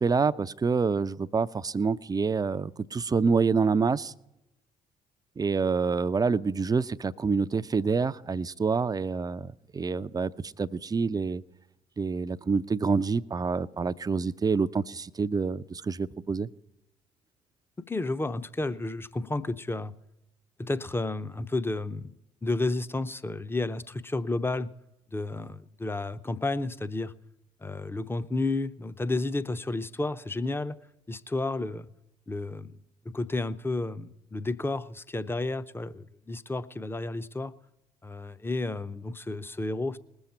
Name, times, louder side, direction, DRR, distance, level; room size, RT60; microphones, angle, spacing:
voice 1, 0.0-4.1 5.4-11.4 12.0-16.5, right 5 dB, 20° right, 0.5 m, -27 dB
voice 2, 17.9-19.9 20.6-22.1 22.4-24.7 25.1-27.1 27.6-30.8 31.1-31.9 32.3-32.7 33.0-37.5 38.0-40.0, left 2 dB, 10° left, 0.7 m, -31 dB
21.0 x 7.2 x 4.4 m
figure-of-eight pair, 45°, 19 cm